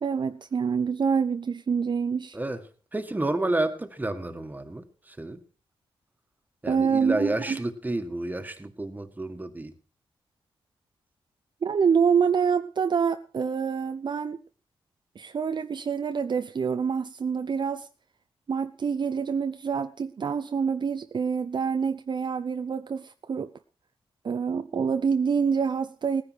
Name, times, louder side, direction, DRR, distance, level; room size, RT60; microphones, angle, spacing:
voice 1, 0.0-2.4 6.7-7.6 11.6-14.4 15.2-17.9 18.5-23.5 24.2-26.2, right 6 dB, 50° right, 10 dB, 0.7 m, -26 dB
voice 2, 2.9-5.4 6.6-9.7, right 2 dB, 15° right, 8 dB, 1.8 m, -30 dB
17.0 x 10.0 x 4.7 m, 0.38 s
cardioid pair, 80°, 10 cm